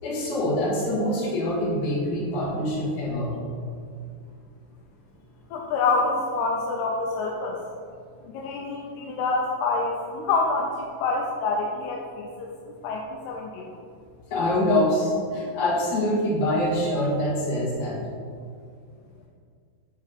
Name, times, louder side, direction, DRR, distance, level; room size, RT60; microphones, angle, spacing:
voice 1, 0.0-3.3 14.3-18.0, left 1 dB, 55° left, -6 dB, 2.7 m, -25 dB
voice 2, 5.5-7.6 8.3-13.8, left 3 dB, 85° left, 0 dB, 2.5 m, -27 dB
7.2 x 4.7 x 5.1 m, 2.2 s
omnidirectional pair, 4.8 m